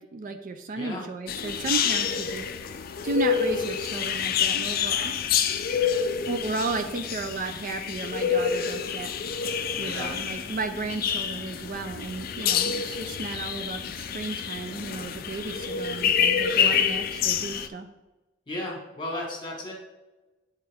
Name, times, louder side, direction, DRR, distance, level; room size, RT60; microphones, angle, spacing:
voice 1, 0.0-2.5 3.0-5.2 6.3-9.1 9.8-17.9, right 3 dB, 45° right, 7 dB, 0.4 m, -33 dB
sound 1, 1.3-17.7, left 7 dB, 50° left, 0.4 m, -27 dB
voice 2, 9.8-10.1 18.5-19.7, left 1 dB, 25° left, -1 dB, 1.7 m, -34 dB
8.6 x 4.3 x 3.5 m, 1.1 s
head